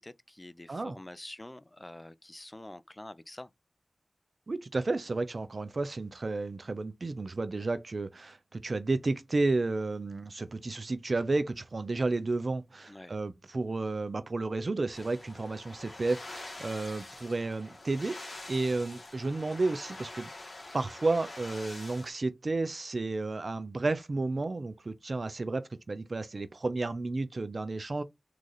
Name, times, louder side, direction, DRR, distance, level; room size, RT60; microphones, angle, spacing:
voice 1, 0.0-3.5 12.9-13.1, left 1 dB, 25° left, 0.5 m, -47 dB
voice 2, 4.5-20.3 20.7-28.0, right 3 dB, 60° right, 0.6 m, -32 dB
sound 1, 14.9-22.1, left 2 dB, 55° left, 1.6 m, -45 dB
3.8 x 3.2 x 4.0 m
cardioid pair, 40°, 0 cm